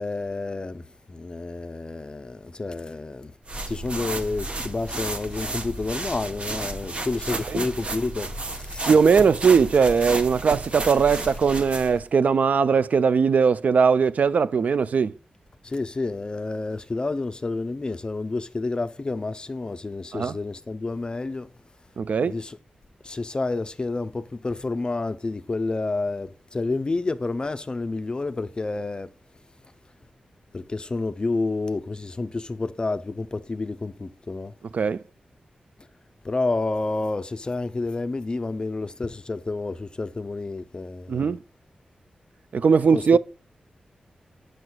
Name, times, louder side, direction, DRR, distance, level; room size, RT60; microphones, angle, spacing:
voice 1, 0.0-3.3 3.7-8.9 11.1-11.2 15.6-21.5 22.3-22.6 23.0-29.1 30.5-34.5 36.2-41.4 42.9-43.2, left 3 dB, 35° left, 0.4 m, -29 dB
sound 1, 3.5-12.0, right 2 dB, 45° right, 0.8 m, -32 dB
voice 2, 8.9-15.1 20.1-20.3 22.0-22.4 34.7-35.0 41.1-41.4 42.5-43.2, right 5 dB, 65° right, 0.3 m, -20 dB
7.8 x 6.3 x 2.2 m
wide cardioid pair, 80°, 3 cm